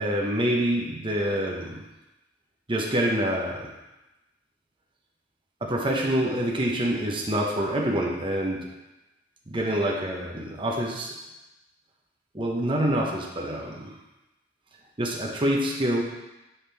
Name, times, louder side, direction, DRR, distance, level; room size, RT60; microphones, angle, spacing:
voice 1, 0.0-1.8 2.7-3.7 5.6-8.7 9.5-11.1 12.3-13.9 15.0-16.0, right 1 dB, 30° right, -2 dB, 0.8 m, -26 dB
5.8 x 5.0 x 3.4 m, 0.99 s
head